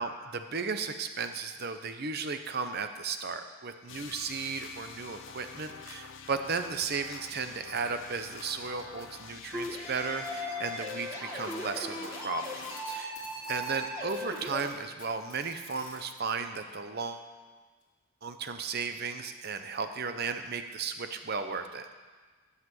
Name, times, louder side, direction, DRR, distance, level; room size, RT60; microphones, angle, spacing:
voice 1, 0.0-13.1 13.5-17.3 18.2-21.9, right 5 dB, 45° right, 8 dB, 0.7 m, -35 dB
sound 1, 3.9-12.9, left 6 dB, 60° left, 0.7 m, -47 dB
sound 2, 9.5-14.6, left 1 dB, 10° right, 1.6 m, -38 dB
Packing tape duct tape, 11.4-13.8 14.1-16.1 17.2-17.3 17.8-17.9 18.8-18.9, left 5 dB, 35° left, 2.2 m, -52 dB
13.0 x 5.9 x 7.6 m, 1.4 s
head